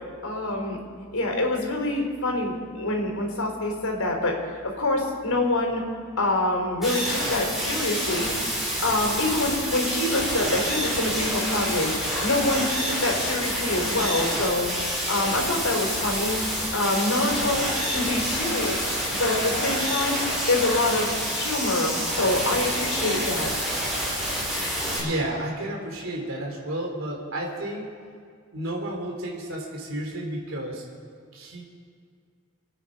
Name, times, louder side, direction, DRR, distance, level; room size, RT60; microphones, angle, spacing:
voice 1, 0.2-0.8 1.1-4.4 4.6-5.8 6.2-8.3 8.8-14.7 15.1-16.4 16.7-21.1 21.3-23.5, left 2 dB, 75° left, 0 dB, 4.3 m, -26 dB
sound 1, 6.8-25.0, equal, ahead, 5.1 m, -28 dB
voice 2, 24.9-27.9 28.5-30.8 31.3-31.6, right 1 dB, 65° right, 0 dB, 3.4 m, -31 dB
27.5 x 9.3 x 5.1 m, 2.1 s
head